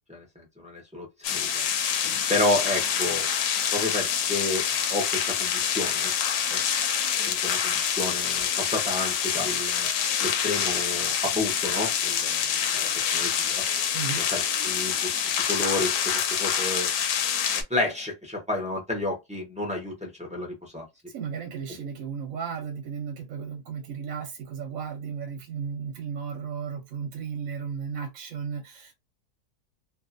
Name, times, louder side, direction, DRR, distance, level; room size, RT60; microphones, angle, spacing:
voice 1, 0.1-1.6 2.3-3.3 3.7-6.1 6.5-6.6 7.3-9.9 10.2-13.6 14.2-15.1 15.5-16.9 17.7-20.9, left 2 dB, 10° right, 0.4 m, -31 dB
sound 1, 1.2-17.6, left 8 dB, 80° left, 1.1 m, -26 dB
voice 2, 13.9-14.3 21.1-28.9, right 7 dB, 65° right, 1.0 m, -34 dB
2.7 x 2.4 x 2.5 m
omnidirectional pair, 1.7 m